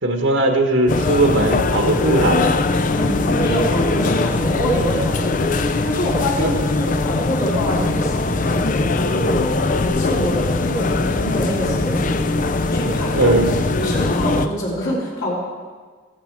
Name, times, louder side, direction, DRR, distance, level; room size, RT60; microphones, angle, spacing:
voice 1, 0.0-2.5 6.4-6.5 13.1-13.6, right 2 dB, 80° right, 3 dB, 1.4 m, -18 dB
sound 1, 0.9-14.5, left 3 dB, 40° left, 0.5 m, -21 dB
voice 2, 2.9-5.6 5.8-12.2 12.7-13.4 13.7-15.3, equal, 65° left, -6 dB, 3.8 m, -25 dB
14.0 x 14.0 x 4.7 m, 1.5 s
head